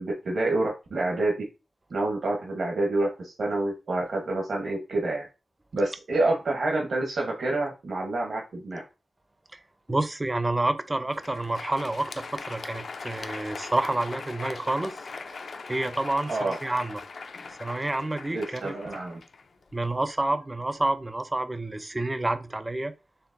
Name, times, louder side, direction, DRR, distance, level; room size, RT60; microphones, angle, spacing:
voice 1, 0.0-1.3 1.9-5.3 5.7-8.8 16.3-16.6 18.3-19.2, right 2 dB, 70° right, 0.9 m, -28 dB
voice 2, 9.9-15.0 15.3-15.4 15.7-17.0 17.6-18.7 19.7-22.9, right 2 dB, 20° right, 0.4 m, -29 dB
Crowd, 11.0-20.0, left 4 dB, 60° left, 0.4 m, -40 dB
4.5 x 3.3 x 2.5 m
wide cardioid pair, 115°, 0 cm